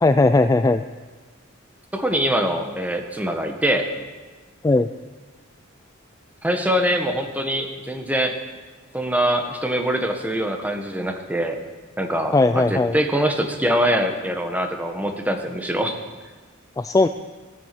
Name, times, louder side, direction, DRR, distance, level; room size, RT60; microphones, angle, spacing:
voice 1, 0.0-0.8 4.6-4.9 12.3-12.9 16.8-17.1, left 2 dB, 15° left, 10 dB, 0.3 m, -17 dB
voice 2, 1.9-3.9 6.4-8.4 8.9-11.6 12.0-15.9, equal, 10° right, 4 dB, 1.4 m, -23 dB
16.0 x 9.5 x 7.6 m, 1.3 s
head